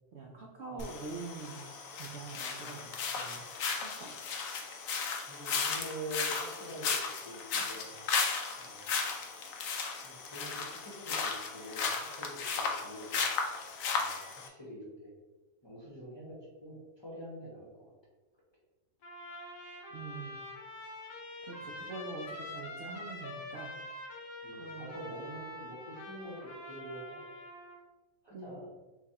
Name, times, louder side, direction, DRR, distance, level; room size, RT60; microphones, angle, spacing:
voice 1, 0.1-1.6 1.9-2.9 3.2-3.4 3.8-4.1 19.9-20.4 21.4-23.7 24.6-24.9 28.3-28.6, right 4 dB, 70° right, 0 dB, 0.6 m, -44 dB
sound 1, 0.8-14.5, left 5 dB, 65° left, 0.9 m, -35 dB
voice 2, 5.3-7.8 8.6-8.9 10.0-13.1 13.9-15.1 15.6-16.4 16.6-17.9 21.6-21.8 24.4-27.2 28.2-28.7, right 1 dB, 20° left, -6 dB, 0.8 m, -46 dB
Trumpet, 19.0-27.8, left 1 dB, 85° left, 1.5 m, -45 dB
6.8 x 2.3 x 2.9 m, 1.2 s
omnidirectional pair, 1.8 m